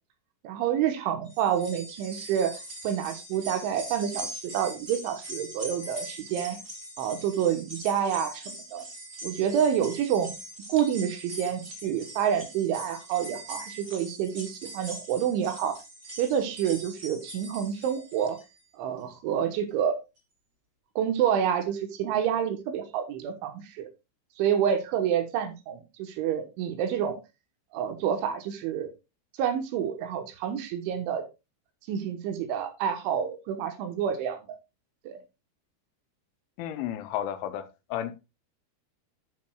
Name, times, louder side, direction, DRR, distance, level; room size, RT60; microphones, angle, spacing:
voice 1, 0.4-2.5 2.8-6.6 7.0-8.8 9.2-10.4 10.7-15.7 16.2-18.4 18.8-20.0 21.0-23.9 24.4-27.2 27.7-28.9 29.4-31.2 31.9-34.6 35.1-35.2, right 9 dB, 80° right, 8 dB, 3.5 m, -28 dB
sound 1, 1.3-18.6 19.0-19.1 20.2-20.3, right 1 dB, 30° right, 1.6 m, -42 dB
voice 2, 36.6-38.2, left 11 dB, 85° left, 9 dB, 3.1 m, -33 dB
12.5 x 7.5 x 2.4 m, 0.26 s
omnidirectional pair, 5.6 m